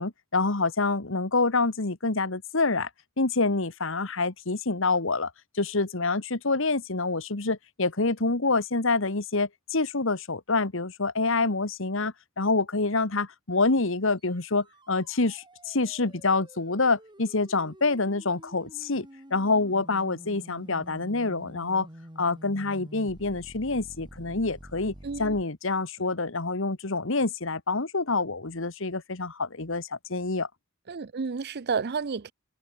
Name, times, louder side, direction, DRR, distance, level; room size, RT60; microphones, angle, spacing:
voice 1, 0.0-2.9 3.2-21.9 22.2-24.9 25.2-30.5, left 3 dB, 65° left, 1.7 m, -27 dB
sound 1, 14.3-25.4, equal, 20° right, 3.7 m, -48 dB
voice 2, 25.0-25.4 30.9-32.3, right 5 dB, 50° right, 0.6 m, -31 dB
open air
head